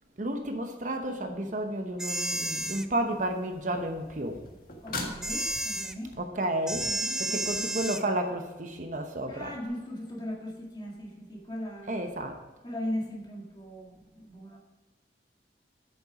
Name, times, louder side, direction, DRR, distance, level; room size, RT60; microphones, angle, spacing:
voice 1, 0.2-4.4 6.2-6.9 7.2-9.5 11.9-12.4, right 1 dB, 45° right, 5 dB, 0.9 m, -32 dB
sound 1, 2.0-2.9 5.2-5.9 6.7-8.0, right 1 dB, 5° right, 0.3 m, -31 dB
sound 2, 3.1-6.2 9.6-9.7, left 2 dB, 55° left, 1.6 m, -41 dB
voice 2, 4.8-6.2 6.8-7.6 9.3-12.1 12.6-14.6, left 1 dB, 25° left, -1 dB, 1.9 m, -38 dB
8.9 x 7.0 x 4.9 m, 1.1 s
head